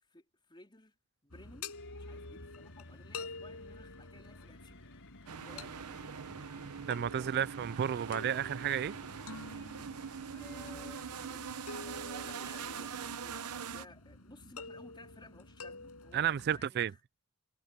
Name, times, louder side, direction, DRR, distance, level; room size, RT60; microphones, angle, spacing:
voice 1, 0.1-1.0 1.2-4.8 5.4-6.1 10.0-11.5 11.8-17.0, left 2 dB, 20° left, 3.4 m, -56 dB
sound 1, 1.3-16.6, left 3 dB, 80° left, 6.0 m, -49 dB
sound 2, 1.7-12.7, left 6 dB, 60° left, 4.2 m, -63 dB
sound 3, 5.3-13.9, right 6 dB, 90° right, 0.8 m, -43 dB
voice 2, 6.9-8.9 16.1-16.9, right 9 dB, 45° right, 0.3 m, -32 dB
head